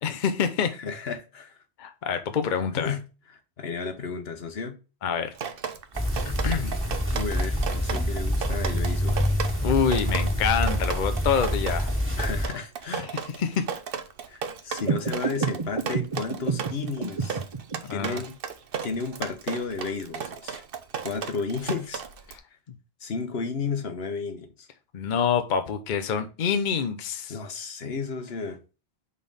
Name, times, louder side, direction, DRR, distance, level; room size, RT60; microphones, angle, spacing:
voice 1, 0.0-0.7 1.8-2.9 5.0-5.3 6.4-6.7 9.6-11.9 13.4-13.7 17.8-18.2 24.9-27.4, left 7 dB, 50° left, 0.8 m, -26 dB
voice 2, 0.8-1.6 2.7-4.8 7.1-9.3 12.2-13.1 14.3-17.4 17.9-18.4 18.8-20.6 21.0-22.0 23.0-24.7 27.3-28.6, left 5 dB, 70° left, 1.2 m, -33 dB
Drip, 5.4-22.4, right 7 dB, 60° right, 0.9 m, -35 dB
sound 1, 5.9-12.5, equal, 10° right, 1.6 m, -26 dB
sound 2, 14.8-17.8, right 5 dB, 30° right, 0.9 m, -29 dB
5.3 x 4.1 x 5.3 m
omnidirectional pair, 1.1 m